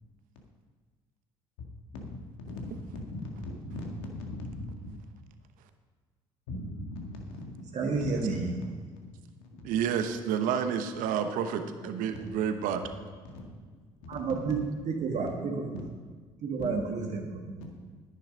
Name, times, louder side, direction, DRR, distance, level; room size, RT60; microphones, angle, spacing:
voice 1, 1.9-4.9 6.5-8.3 8.6-9.7 12.1-12.3 12.8-12.9 13.3-13.6 15.2-15.3 15.7-15.8 16.6-16.7 17.6-17.8, left 1 dB, 80° left, 1 dB, 2.0 m, -40 dB
voice 2, 7.7-8.5 14.1-14.6 14.9-15.8 16.4-17.6, right 4 dB, 55° right, 1 dB, 1.6 m, -31 dB
voice 3, 9.6-12.8, right 8 dB, 70° right, 8 dB, 1.0 m, -29 dB
10.5 x 9.3 x 5.2 m, 1.5 s
hypercardioid pair, 60°, 14 cm